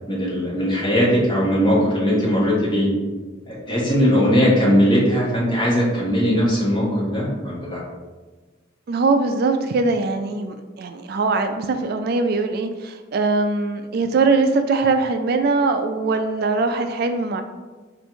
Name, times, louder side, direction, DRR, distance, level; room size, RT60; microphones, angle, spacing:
voice 1, 0.1-2.9 3.5-7.8, equal, 25° left, -6 dB, 1.4 m, -19 dB
voice 2, 8.9-17.4, right 3 dB, 55° right, 7 dB, 0.3 m, -21 dB
4.5 x 2.5 x 4.4 m, 1.3 s
head